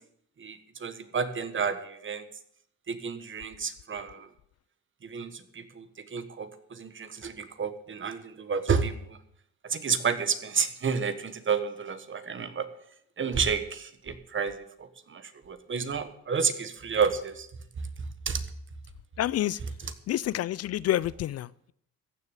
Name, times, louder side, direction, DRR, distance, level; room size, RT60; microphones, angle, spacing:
voice 1, 0.4-2.2 2.9-4.3 5.0-5.9 6.1-9.2 9.6-12.7 13.2-17.5 18.2-18.4 19.8-19.9, right 6 dB, 40° right, 1.5 m, -30 dB
voice 2, 19.2-19.6 20.1-21.7, left 13 dB, 55° left, 0.4 m, -28 dB
14.5 x 6.8 x 8.3 m
cardioid pair, 90°, 30 cm